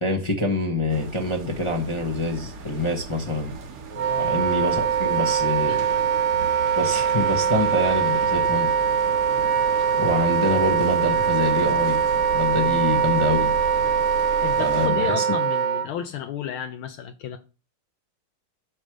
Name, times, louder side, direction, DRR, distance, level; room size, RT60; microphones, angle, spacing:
voice 1, 0.0-3.5 4.2-5.8 6.8-8.7 9.9-12.0 12.3-13.5 14.6-15.2, left 1 dB, 25° left, 0.6 m, -25 dB
sound 1, 0.9-14.9, right 4 dB, 50° right, 1.3 m, -37 dB
Wind instrument woodwind instrument, 3.9-15.9, right 7 dB, 70° right, 1.4 m, -22 dB
voice 2, 4.0-4.3 5.7-6.0 9.1-9.3 12.6-12.8 14.2-17.4, left 10 dB, 75° left, 1.4 m, -33 dB
9.2 x 3.2 x 6.3 m
omnidirectional pair, 2.4 m